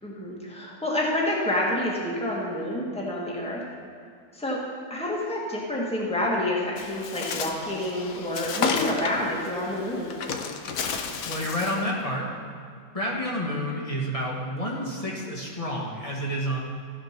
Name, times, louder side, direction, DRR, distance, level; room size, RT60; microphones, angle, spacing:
voice 1, 0.0-3.6 4.3-4.6 4.9-10.2, left 1 dB, 5° left, -4 dB, 1.8 m, -28 dB
Bird, 6.8-11.9, left 5 dB, 60° left, 1.0 m, -32 dB
voice 2, 11.2-12.3 12.9-16.6, equal, 20° left, -3 dB, 1.6 m, -29 dB
14.5 x 5.2 x 5.9 m, 2.3 s
omnidirectional pair, 1.9 m